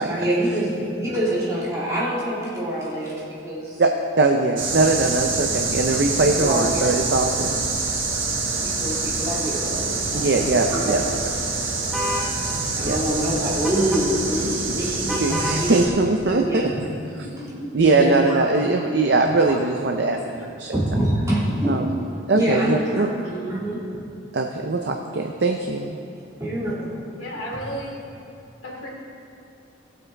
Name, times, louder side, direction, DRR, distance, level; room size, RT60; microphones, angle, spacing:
voice 1, 0.1-3.8 6.2-6.9 7.8-7.9 8.6-11.0 12.5-15.8 16.2-16.7 17.9-18.4 19.4-19.5 20.7-21.9 22.3-24.0 26.4-26.7, right 1 dB, 15° right, -8 dB, 2.6 m, -26 dB
voice 2, 4.2-7.6 10.1-11.0 12.9-13.0 15.2-16.7 17.2-17.3 17.7-20.8 21.7-22.0 22.3-23.1 24.3-26.0, right 3 dB, 55° right, 3 dB, 0.5 m, -21 dB
sound 1, 4.6-15.9, right 3 dB, 85° right, 1.6 m, -26 dB
sound 2, 11.9-12.3 13.6-14.0 15.1-15.6, left 1 dB, ahead, 0.9 m, -28 dB
voice 3, 17.2-17.7 27.2-28.0 28.6-28.9, equal, 75° left, -4 dB, 2.7 m, -33 dB
17.5 x 8.0 x 3.4 m, 2.6 s
head